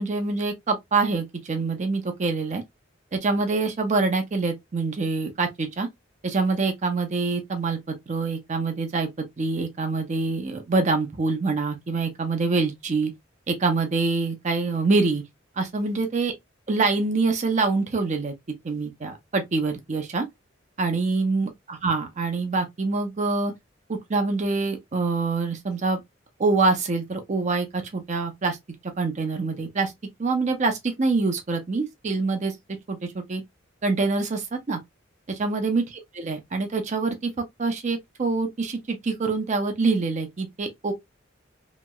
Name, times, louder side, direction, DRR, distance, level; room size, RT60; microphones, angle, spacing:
voice 1, 0.0-2.6 3.1-5.9 6.2-13.1 13.5-15.2 15.6-16.3 16.7-18.3 18.6-20.3 20.8-23.5 23.9-26.0 26.4-28.6 29.0-29.9 30.2-32.6 32.9-33.4 33.8-34.8 35.3-35.8 36.2-37.3 37.6-40.9, right 3 dB, 35° right, 0.5 m, -25 dB
2.9 x 2.7 x 2.2 m
head